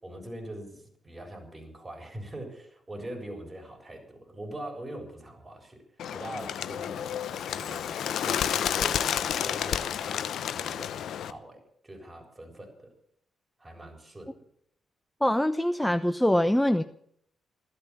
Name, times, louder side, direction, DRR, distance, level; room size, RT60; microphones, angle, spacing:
voice 1, 0.0-5.8 6.1-12.9 13.6-14.4, right 1 dB, 25° right, 2 dB, 7.3 m, -43 dB
Bird, 6.0-11.3, left 9 dB, 70° left, 0.8 m, -30 dB
voice 2, 15.2-16.8, left 1 dB, 5° left, 9 dB, 0.9 m, -24 dB
15.5 x 12.5 x 7.3 m, 0.69 s
hypercardioid pair, 45°, 0 cm